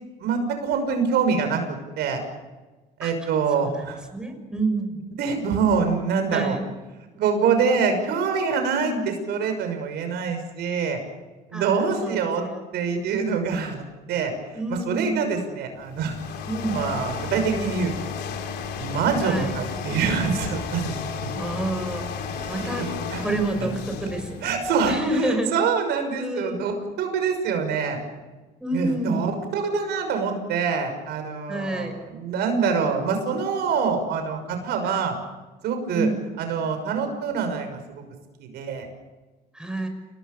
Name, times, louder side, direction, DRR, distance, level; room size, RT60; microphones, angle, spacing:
voice 1, 0.2-2.2 3.0-4.0 5.2-6.6 7.1-11.0 11.5-12.5 12.7-13.8 14.1-17.9 18.3-18.4 18.8-21.0 22.4-23.2 24.4-28.0 28.7-35.1 35.6-36.1 36.4-38.0 38.4-38.9, right 5 dB, 75° right, 6 dB, 6.1 m, -25 dB
voice 2, 4.1-5.0 6.3-6.7 8.8-9.0 11.5-12.7 14.5-15.3 16.5-16.8 19.2-19.5 21.3-22.1 22.5-22.8 23.2-24.5 24.8-25.5 26.2-26.6 28.6-29.4 31.5-31.9 34.9-35.1 35.9-36.2 39.5-39.9, right 2 dB, 5° right, 5 dB, 6.2 m, -28 dB
sound 1, 15.8-25.0, left 5 dB, 75° left, 3.5 m, -33 dB
29.0 x 19.5 x 7.0 m, 1.2 s
cardioid pair, 110°, 17 cm